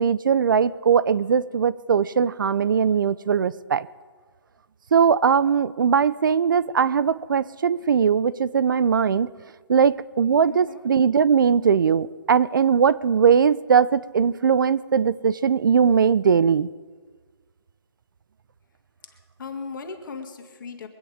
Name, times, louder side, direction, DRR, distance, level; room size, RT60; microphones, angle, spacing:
voice 1, 0.0-3.9 4.9-9.3 9.7-16.7, right 6 dB, 45° right, 18 dB, 0.5 m, -20 dB
voice 2, 10.4-10.9 19.1-20.9, left 5 dB, 45° left, 5 dB, 2.0 m, -37 dB
23.5 x 9.1 x 5.0 m, 1.5 s
hypercardioid pair, 160°, 15 cm